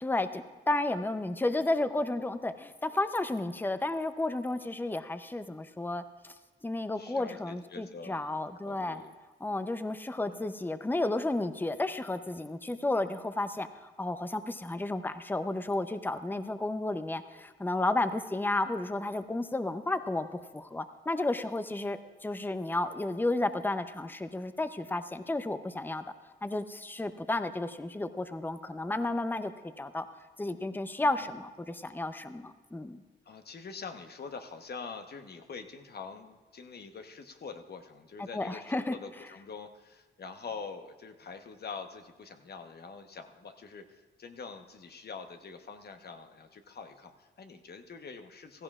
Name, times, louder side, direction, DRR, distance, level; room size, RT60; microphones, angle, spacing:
voice 1, 0.0-6.3 6.6-9.0 9.4-26.0 26.4-29.5 29.8-30.1 30.4-33.0 38.3-38.9, left 2 dB, 10° left, 10 dB, 0.6 m, -32 dB
voice 2, 7.0-8.3 8.6-9.1 10.2-10.5 31.0-31.3 33.2-48.6, left 5 dB, 55° left, 6 dB, 1.0 m, -45 dB
16.0 x 15.0 x 2.4 m, 1.3 s
cardioid pair, 60°, 20 cm